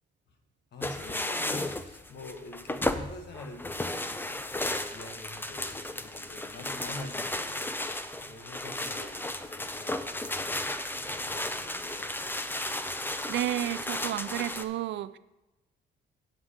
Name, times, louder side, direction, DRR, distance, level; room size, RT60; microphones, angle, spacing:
voice 1, 0.7-4.5 4.9-12.3, left 2 dB, 60° left, 5 dB, 1.6 m, -46 dB
sound 1, 0.8-14.6, left 1 dB, 10° left, 0.6 m, -34 dB
voice 2, 13.3-15.2, right 13 dB, 65° right, 16 dB, 0.4 m, -31 dB
8.0 x 7.3 x 5.0 m, 1.0 s
cardioid pair, 90°, 20 cm